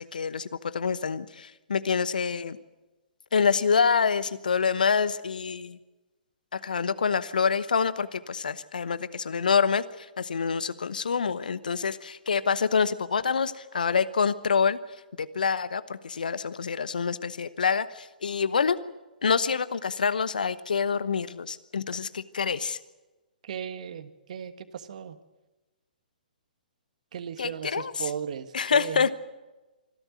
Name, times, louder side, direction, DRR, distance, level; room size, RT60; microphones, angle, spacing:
voice 1, 0.0-2.6 3.3-5.8 6.5-14.8 15.2-18.8 19.2-22.8 27.4-27.9 28.5-29.1, left 6 dB, 70° left, 16 dB, 1.0 m, -26 dB
voice 2, 23.4-25.2 27.1-29.1, right 8 dB, 55° right, 12 dB, 1.4 m, -37 dB
25.0 x 12.5 x 9.5 m, 1.1 s
figure-of-eight pair, 125°, 5 cm